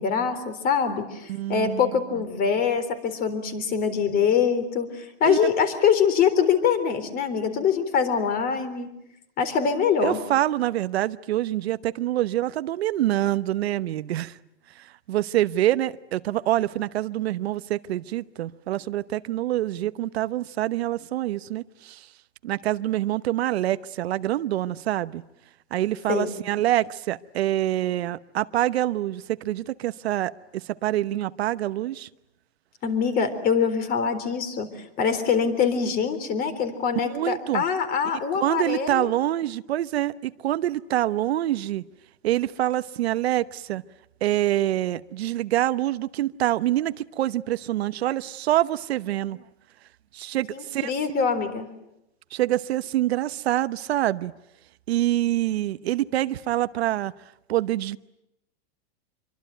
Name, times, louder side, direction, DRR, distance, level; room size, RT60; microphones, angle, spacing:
voice 1, 0.0-8.9 9.4-10.2 26.1-26.3 32.8-34.7 35.0-39.1 50.5-51.7, left 6 dB, 30° left, 3.8 m, -24 dB
voice 2, 1.3-1.8 5.2-5.5 10.0-14.4 14.8-22.1 22.4-25.2 25.7-32.1 37.0-37.6 38.3-41.8 42.2-43.8 44.2-49.4 50.1-50.9 52.3-54.3 54.9-57.1 57.5-58.0, right 14 dB, 85° right, 1.0 m, -26 dB
26.0 x 24.0 x 9.2 m
supercardioid pair, 155°, 31 cm